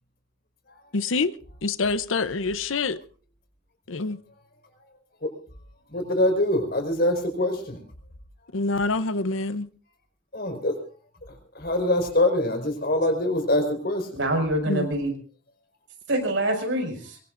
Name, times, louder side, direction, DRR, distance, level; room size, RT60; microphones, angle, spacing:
voice 1, 0.9-1.3 1.6-3.0 3.9-4.2 8.5-9.7 14.7-14.9, left 3 dB, 80° left, 0.8 m, -26 dB
voice 2, 5.9-7.8 10.3-10.7 11.5-14.1, left 1 dB, 50° left, 4.8 m, -24 dB
voice 3, 14.1-15.1 16.1-17.2, right 1 dB, 70° right, 6.0 m, -25 dB
23.0 x 23.0 x 2.6 m
head